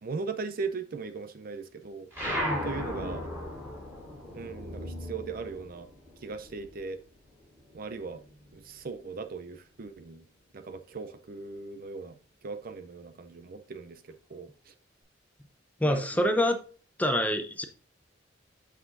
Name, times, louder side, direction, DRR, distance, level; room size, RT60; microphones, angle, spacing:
voice 1, 0.0-2.1 2.6-3.3 4.3-5.9 6.2-7.0 7.7-8.2 8.5-10.2 10.5-12.2 12.4-14.7 15.8-16.4, right 4 dB, 50° right, 0.5 m, -39 dB
sound 1, 2.1-7.0 7.3-8.7, equal, 10° right, 3.5 m, -36 dB
voice 2, 15.8-16.6 17.0-17.6, equal, 10° left, 0.6 m, -25 dB
8.4 x 5.6 x 2.6 m
head